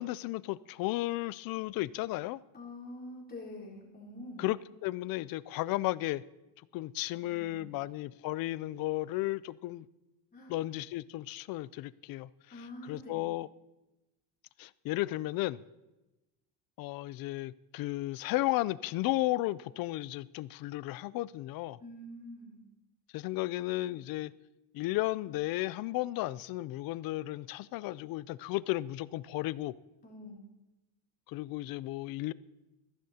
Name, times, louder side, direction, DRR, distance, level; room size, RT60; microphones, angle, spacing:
voice 1, 0.0-2.4 4.4-6.2 6.7-9.9 10.5-12.3 12.9-13.5 14.6-15.6 16.8-21.8 23.1-24.3 24.7-29.7 31.3-32.3, left 17 dB, 55° left, 19 dB, 0.5 m, -34 dB
voice 2, 2.5-4.6 7.3-7.8 10.3-10.5 12.5-13.2 21.8-22.6 30.0-30.4, left 1 dB, 20° left, -3 dB, 3.6 m, -46 dB
21.0 x 15.0 x 2.8 m, 1.0 s
cardioid pair, 145°, 42 cm